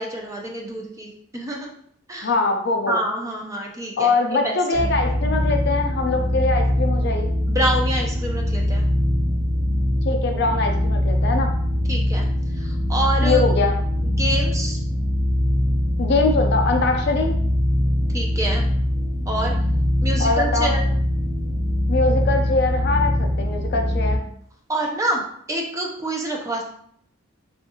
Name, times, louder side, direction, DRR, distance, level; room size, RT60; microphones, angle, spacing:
voice 1, 0.0-1.7 2.1-2.3 2.9-4.9 7.5-8.8 11.9-12.3 12.5-13.5 14.0-14.8 18.1-18.7 19.3-19.5 20.0-20.8 24.7-25.2 25.5-26.6, right 1 dB, 15° right, 0 dB, 0.4 m, -27 dB
voice 2, 2.2-3.0 4.0-7.3 10.1-11.5 13.2-13.7 16.0-17.4 20.2-20.7 21.9-24.2, left 3 dB, 50° left, 4 dB, 0.4 m, -22 dB
sound 1, 4.7-24.2, left 1 dB, 85° right, 1.1 m, -22 dB
3.6 x 2.4 x 2.7 m, 0.65 s
head